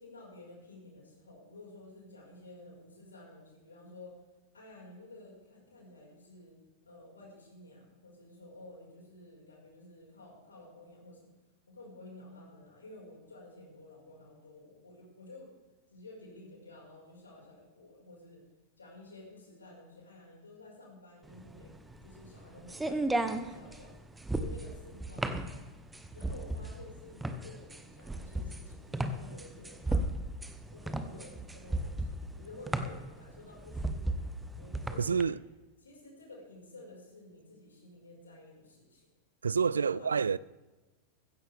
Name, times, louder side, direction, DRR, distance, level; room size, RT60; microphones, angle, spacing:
voice 1, 0.0-4.2 4.5-6.6 6.8-11.3 11.7-15.5 15.9-18.4 18.8-23.9 24.3-25.5 26.1-30.0 30.7-34.2 34.6-35.4 35.8-39.1 39.8-40.1, left 2 dB, 75° left, 5.3 m, -52 dB
sound 1, 21.3-35.2, right 2 dB, 10° right, 1.0 m, -35 dB
voice 2, 35.0-35.4 39.4-40.4, right 6 dB, 70° right, 0.3 m, -28 dB
16.0 x 15.0 x 3.5 m
figure-of-eight pair, 90°, 0 cm